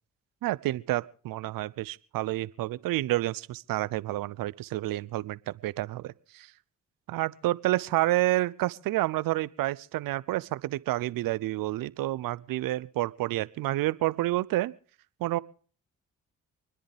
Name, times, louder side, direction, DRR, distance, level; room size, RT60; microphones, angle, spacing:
voice 1, 0.4-6.5 7.1-14.7 15.2-15.4, right 16 dB, 70° right, 21 dB, 0.6 m, -29 dB
28.0 x 10.5 x 3.4 m, 0.41 s
supercardioid pair, 50°, 35 cm